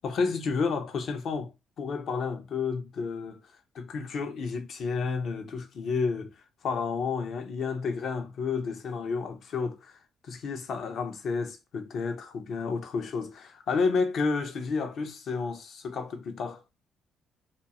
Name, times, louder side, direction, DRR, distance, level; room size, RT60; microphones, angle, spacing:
voice 1, 0.0-1.5 1.8-3.4 3.7-6.3 6.6-10.0 10.3-16.6, left 4 dB, 65° left, 0.6 m, -31 dB
2.6 x 2.3 x 2.8 m
cardioid pair, 90°, 0 cm